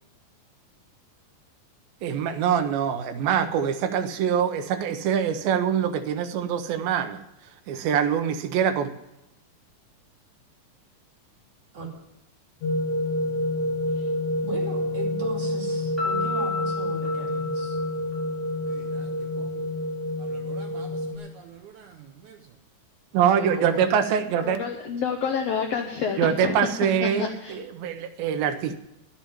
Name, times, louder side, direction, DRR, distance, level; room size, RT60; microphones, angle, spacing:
voice 1, 2.0-7.2 7.7-8.9 23.1-24.6 26.2-28.8, right 8 dB, 90° right, 8 dB, 2.6 m, -24 dB
sound 1, 12.6-21.2, left 1 dB, 65° left, 2.3 m, -28 dB
voice 2, 14.4-17.8 23.4-23.8, right 2 dB, 35° right, -3 dB, 3.2 m, -36 dB
Piano, 16.0-18.8, left 5 dB, ahead, 4.3 m, -32 dB
voice 3, 18.7-19.7 20.2-22.4, right 8 dB, 75° right, 4 dB, 2.0 m, -47 dB
voice 4, 24.4-26.6 27.0-27.6, left 6 dB, 80° left, 4 dB, 1.4 m, -28 dB
12.0 x 7.3 x 8.6 m, 0.93 s
omnidirectional pair, 4.1 m